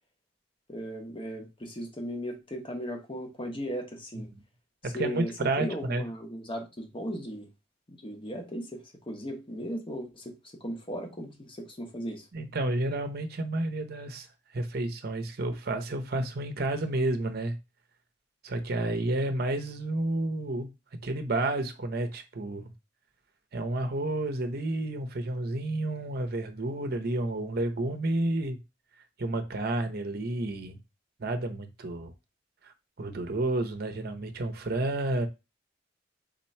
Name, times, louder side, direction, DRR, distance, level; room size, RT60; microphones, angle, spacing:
voice 1, 0.7-4.3 4.8-7.5 7.9-10.3 10.6-12.3, equal, 30° left, 1.1 m, -37 dB
voice 2, 4.8-6.0 12.3-14.3 14.5-17.5 18.4-20.7 21.0-22.7 23.5-28.6 29.2-30.8 31.2-32.1 32.6-32.7 33.0-35.3, right 2 dB, 55° right, 0.7 m, -30 dB
3.8 x 3.0 x 4.3 m
head